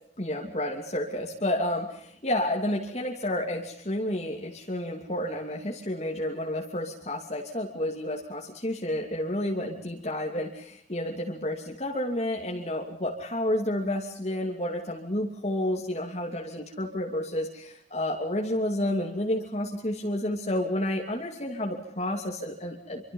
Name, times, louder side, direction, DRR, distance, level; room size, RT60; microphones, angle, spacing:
voice 1, 0.2-23.1, left 1 dB, 35° left, 0 dB, 2.8 m, -30 dB
27.0 x 25.0 x 5.5 m, 0.67 s
head